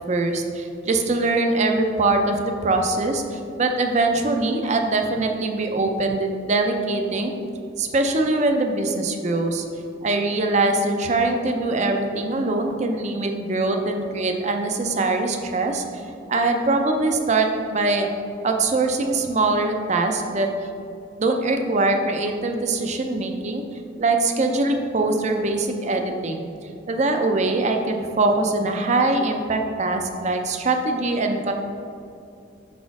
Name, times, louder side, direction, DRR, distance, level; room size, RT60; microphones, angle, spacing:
voice 1, 0.1-7.3 7.8-9.6 10.0-15.8 16.3-18.1 18.4-20.5 21.2-23.6 24.0-26.5 26.9-31.5, right 2 dB, 35° right, 4 dB, 0.5 m, -22 dB
6.2 x 4.2 x 4.7 m, 2.6 s
head